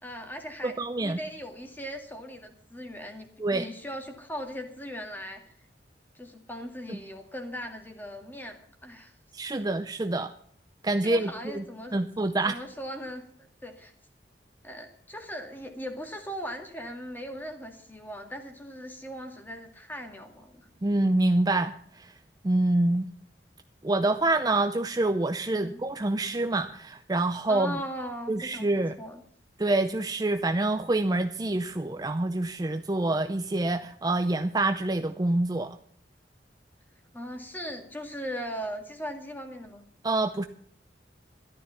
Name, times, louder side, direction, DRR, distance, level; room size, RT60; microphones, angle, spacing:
voice 1, 0.0-5.4 6.1-9.1 9.6-9.7 11.0-11.9 12.5-13.9 14.6-20.7 25.5-25.8 27.5-28.7 29.0-29.2 37.1-39.8, equal, 10° left, 4 dB, 2.1 m, -39 dB
voice 2, 0.6-1.2 3.4-3.7 6.9-7.0 9.3-10.3 10.8-11.6 11.9-12.6 20.8-22.1 22.4-23.1 23.8-27.8 28.3-28.9 29.6-35.8 40.0-40.4, right 2 dB, 20° right, 8 dB, 0.5 m, -26 dB
13.5 x 12.0 x 5.8 m, 0.63 s
head